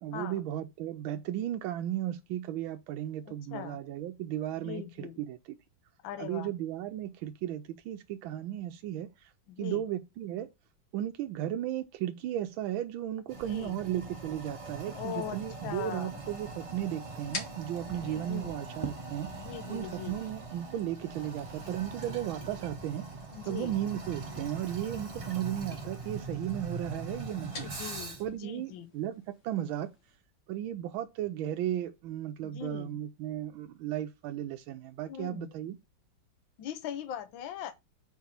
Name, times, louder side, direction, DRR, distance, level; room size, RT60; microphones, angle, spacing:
voice 1, 0.0-5.4 6.2-9.3 9.6-10.5 10.9-19.3 19.7-23.1 23.4-27.7 28.2-29.9 30.5-35.8, right 12 dB, 85° right, 1.4 m, -35 dB
voice 2, 3.3-3.8 4.6-5.2 6.0-6.5 9.5-9.8 13.5-13.8 14.9-16.2 17.9-18.5 19.3-20.2 23.3-23.8 27.3-28.9 32.4-33.0 35.1-35.5 36.6-37.7, left 10 dB, 75° left, 1.5 m, -41 dB
Toilet flush, 13.3-28.4, right 3 dB, 25° right, 0.7 m, -42 dB
sound 1, 15.8-30.2, left 3 dB, 55° left, 2.2 m, -51 dB
4.7 x 4.3 x 5.6 m
omnidirectional pair, 2.2 m